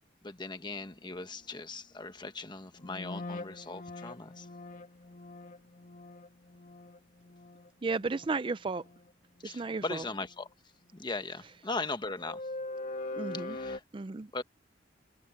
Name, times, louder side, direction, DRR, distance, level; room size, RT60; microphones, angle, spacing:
voice 1, 0.2-4.5 9.4-10.5 10.9-12.5 13.3-13.8 14.3-14.4, left 3 dB, 25° left, 1.2 m, -39 dB
sound 1, 0.9-1.0 2.8-8.4 8.7-9.1 9.5-9.7 12.1-13.8, left 2 dB, 45° left, 1.7 m, -42 dB
voice 2, 7.8-8.9 9.4-10.1 13.2-13.6 13.9-14.3, right 3 dB, 25° right, 0.4 m, -33 dB
head